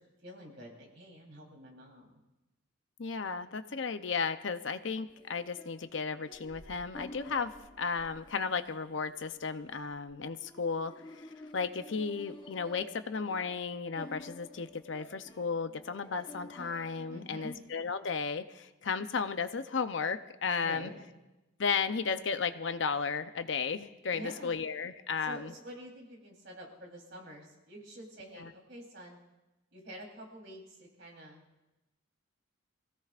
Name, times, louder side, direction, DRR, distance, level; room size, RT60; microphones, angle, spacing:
voice 1, 0.2-2.2 17.1-17.5 20.6-21.0 24.1-24.5 25.2-29.2 29.7-31.4, equal, 60° right, 0 dB, 3.7 m, -47 dB
voice 2, 3.0-11.3 11.5-20.9 21.6-25.5 28.4-28.5, left 5 dB, 65° left, 10 dB, 0.7 m, -34 dB
sound 1, 5.1-17.6, left 1 dB, 25° left, 1.0 m, -52 dB
24.5 x 16.5 x 2.5 m, 1.0 s
head